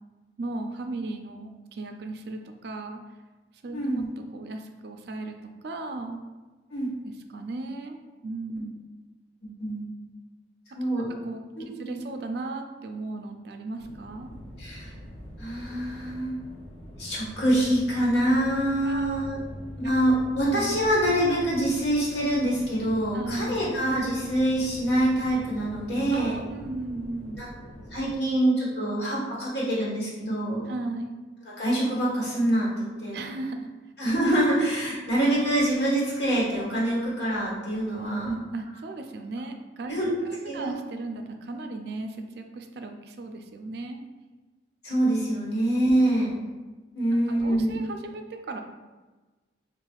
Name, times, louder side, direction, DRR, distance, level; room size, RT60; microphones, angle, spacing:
voice 1, 0.4-3.0 3.6-4.0 4.3-5.4 5.6-6.2 7.0-8.8 10.8-11.4 11.7-14.3 18.8-19.5 19.8-19.9 20.5-20.8 23.1-23.6 26.1-27.4 30.7-31.2 33.1-33.7 38.0-40.0 40.2-44.0 45.6-45.9 47.4-48.6, right 2 dB, 60° right, 5 dB, 0.4 m, -36 dB
voice 2, 3.7-4.1 6.7-6.9 9.4-9.8 10.7-11.1 11.6-12.0 14.6-14.9 15.4-16.5 17.0-19.4 19.8-26.4 27.4-27.5 27.9-30.6 31.6-33.2 34.0-38.3 39.9-40.2 40.5-40.7 44.8-46.3 46.9-47.8, right 1 dB, 65° left, -6 dB, 1.4 m, -25 dB
sound 1, 13.8-28.2, equal, 35° left, 0.7 m, -43 dB
5.6 x 2.4 x 2.3 m, 1.2 s
head